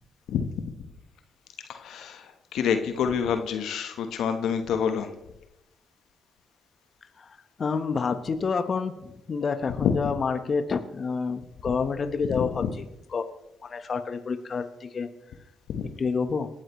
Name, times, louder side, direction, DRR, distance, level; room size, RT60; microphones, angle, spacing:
voice 1, 1.7-5.1 9.7-10.0 12.3-12.7 15.7-15.9, left 7 dB, 70° left, 7 dB, 1.2 m, -27 dB
voice 2, 7.2-12.6 13.1-13.3 13.6-15.1 16.0-16.5, left 5 dB, 50° left, 9 dB, 1.2 m, -28 dB
27.5 x 12.0 x 3.2 m, 0.89 s
hypercardioid pair, 40°, 0 cm